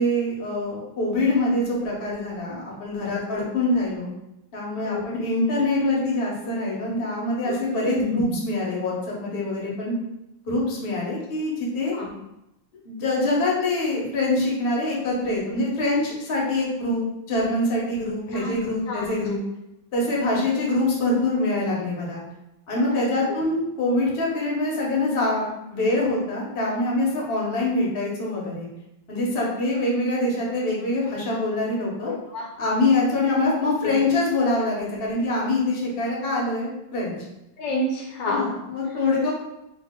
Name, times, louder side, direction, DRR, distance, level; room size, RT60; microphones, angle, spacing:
voice 1, 0.0-4.1 4.5-9.9 10.5-11.9 12.8-19.4 19.9-22.2 22.7-28.7 29.1-32.1 32.6-37.2 38.3-39.3, left 2 dB, 40° left, -4 dB, 0.8 m, -24 dB
voice 2, 7.4-8.3 12.0-12.1 18.3-18.5 18.9-19.1 20.2-20.4 32.1-32.5 33.8-33.9 37.6-38.5, left 2 dB, 75° left, -1 dB, 1.3 m, -28 dB
3.1 x 2.5 x 3.6 m, 0.88 s
omnidirectional pair, 2.0 m